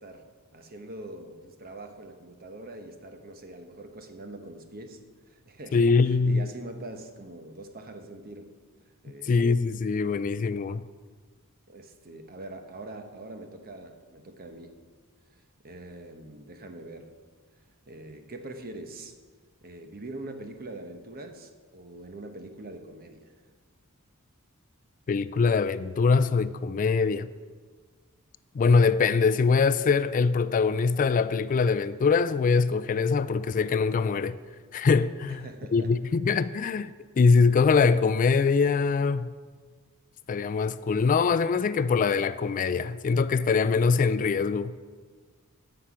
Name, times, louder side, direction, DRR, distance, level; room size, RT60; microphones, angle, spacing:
voice 1, 0.0-5.0 5.3-8.5 9.0-9.6 11.7-14.8 15.3-17.1 17.9-19.1 19.6-23.4 35.3-35.9, right 2 dB, 45° right, 1.0 m, -43 dB
voice 2, 5.7-6.5 9.3-10.8 25.1-27.3 28.5-34.4 34.7-35.4 35.7-39.3 40.3-44.7, left 4 dB, 35° left, 0.3 m, -23 dB
14.0 x 5.9 x 5.0 m
head